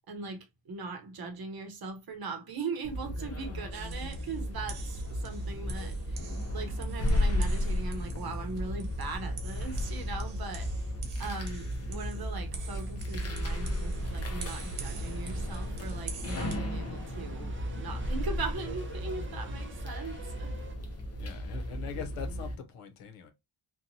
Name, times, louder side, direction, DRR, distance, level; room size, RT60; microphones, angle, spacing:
voice 1, 0.1-10.9 11.2-20.5, right 4 dB, 45° right, 0.8 m, -40 dB
sound 1, 2.8-22.5, left 1 dB, 30° left, 0.6 m, -34 dB
sound 2, 3.7-16.6, right 2 dB, 85° right, 1.0 m, -42 dB
sound 3, 13.2-20.8, right 4 dB, 25° right, 0.4 m, -50 dB
voice 2, 13.6-13.9 21.2-23.3, left 6 dB, 90° left, 0.8 m, -42 dB
2.9 x 2.2 x 2.6 m
wide cardioid pair, 130°, 50 cm